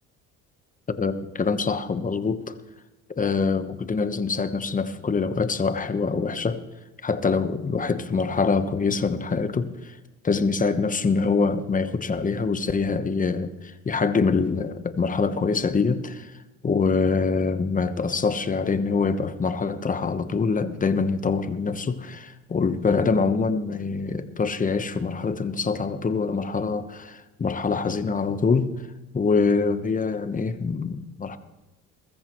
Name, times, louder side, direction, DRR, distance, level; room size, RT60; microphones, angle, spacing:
voice 1, 1.0-2.5 3.2-6.6 7.0-10.0 10.2-28.7 29.1-31.4, left 4 dB, 25° left, 11 dB, 1.1 m, -25 dB
21.5 x 14.0 x 3.1 m, 1.1 s
supercardioid pair, 85°, 30 cm